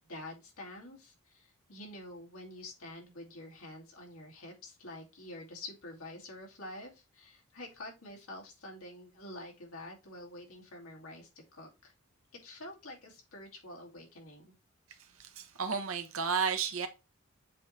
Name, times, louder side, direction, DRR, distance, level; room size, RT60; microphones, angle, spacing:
voice 1, 0.1-11.9 12.3-14.5, left 1 dB, 80° left, 2.4 m, -47 dB
voice 2, 15.2-16.9, right 6 dB, 75° right, 1.1 m, -32 dB
7.5 x 3.2 x 4.3 m
head